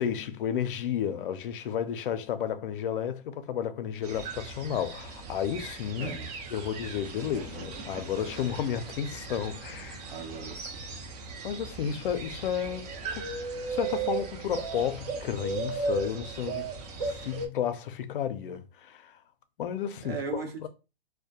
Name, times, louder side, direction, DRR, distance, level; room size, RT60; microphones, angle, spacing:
voice 1, 0.0-6.1 6.5-10.0 11.4-13.3 13.7-16.7 17.0-19.2 19.6-20.7, left 9 dB, 65° left, 0.5 m, -32 dB
sound 1, 4.0-17.5, right 4 dB, 45° right, 0.5 m, -37 dB
voice 2, 6.0-6.3 10.1-10.8 20.0-20.7, right 5 dB, 80° right, 0.8 m, -37 dB
2.2 x 2.1 x 2.7 m
hypercardioid pair, 140°, 29 cm